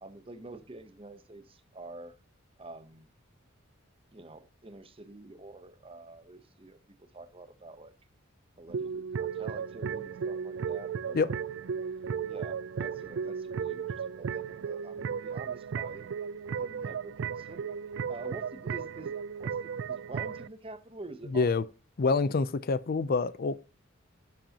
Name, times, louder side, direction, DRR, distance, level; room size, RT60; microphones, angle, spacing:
voice 1, 0.0-2.2 2.6-3.1 4.1-7.9 8.6-11.4 12.2-16.1 16.6-17.8 18.1-21.5, right 2 dB, 25° right, 0.8 m, -47 dB
sound 1, 8.7-20.5, right 6 dB, 60° right, 0.3 m, -35 dB
voice 2, 21.3-21.6 22.0-23.5, left 4 dB, 45° left, 0.4 m, -26 dB
10.5 x 7.5 x 2.8 m
head